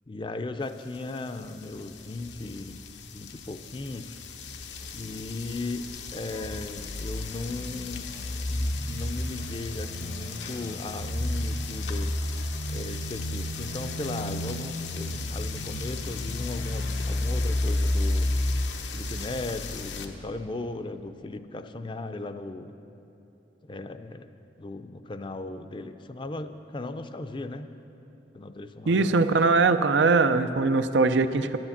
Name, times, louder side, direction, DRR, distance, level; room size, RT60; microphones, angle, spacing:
voice 1, 0.1-2.8 3.1-4.2 4.9-5.8 6.1-8.1 8.5-12.1 12.7-18.3 18.9-22.7 23.6-24.3 24.6-27.7 28.3-29.2, left 2 dB, 25° left, 9 dB, 0.4 m, -37 dB
sound 1, 1.5-20.1, left 1 dB, 85° left, 0.9 m, -32 dB
voice 2, 28.9-31.6, right 3 dB, 85° right, 10 dB, 0.5 m, -21 dB
11.0 x 10.5 x 7.2 m, 2.9 s
head